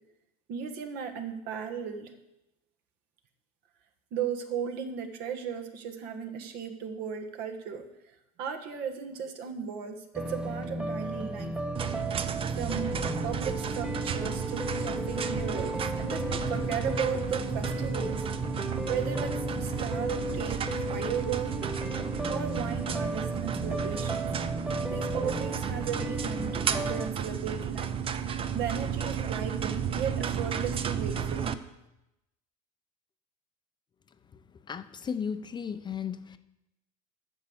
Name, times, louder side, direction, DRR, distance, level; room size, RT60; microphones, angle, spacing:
voice 1, 0.5-2.1 4.1-7.8 8.4-11.5 12.5-12.9 13.2-15.7 16.0-18.2 18.9-20.6 20.9-21.5 22.3-24.3 24.9-28.0 28.5-31.5, right 7 dB, 60° right, 6 dB, 1.6 m, -35 dB
sound 1, 10.1-27.1, equal, 5° right, 0.9 m, -35 dB
sound 2, 11.7-31.5, right 8 dB, 30° right, 0.7 m, -33 dB
voice 2, 34.7-36.4, left 7 dB, 25° left, 11 dB, 0.6 m, -35 dB
9.7 x 6.5 x 7.1 m, 0.91 s
supercardioid pair, 105°, 18 cm